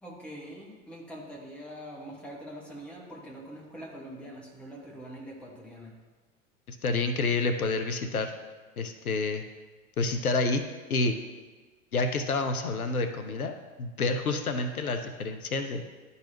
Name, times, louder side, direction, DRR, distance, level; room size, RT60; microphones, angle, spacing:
voice 1, 0.0-5.9, equal, 5° left, -4 dB, 1.4 m, -44 dB
voice 2, 6.7-8.3 8.8-9.4 10.0-10.6 10.9-11.2 11.9-13.5 13.8-15.8, left 3 dB, 80° left, 7 dB, 0.6 m, -28 dB
11.5 x 4.0 x 2.8 m, 1.3 s
figure-of-eight pair, 90°, 42 cm